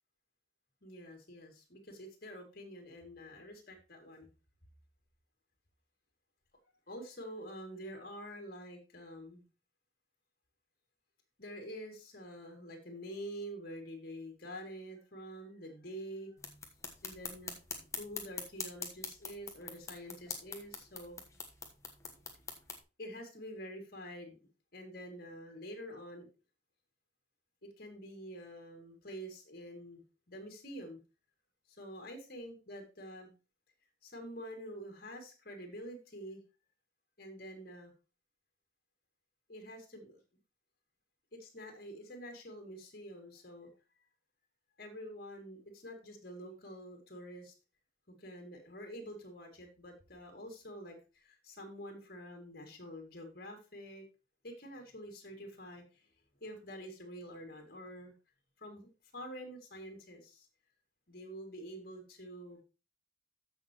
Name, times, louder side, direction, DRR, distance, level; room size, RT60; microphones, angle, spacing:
voice 1, 0.8-4.3 6.9-9.5 11.4-16.4 17.0-17.6 18.0-21.2 23.0-24.4 24.7-26.3 27.6-31.0 31.7-33.3 34.0-36.4 37.2-37.9 39.5-40.2 41.3-43.7 44.8-47.5 48.2-54.0 54.4-56.1 56.4-58.1 58.6-60.5 61.1-62.6, equal, 50° left, 3 dB, 2.7 m, -47 dB
sound 1, 16.4-22.8, left 5 dB, 15° left, 1.2 m, -44 dB
14.0 x 6.3 x 3.1 m, 0.30 s
head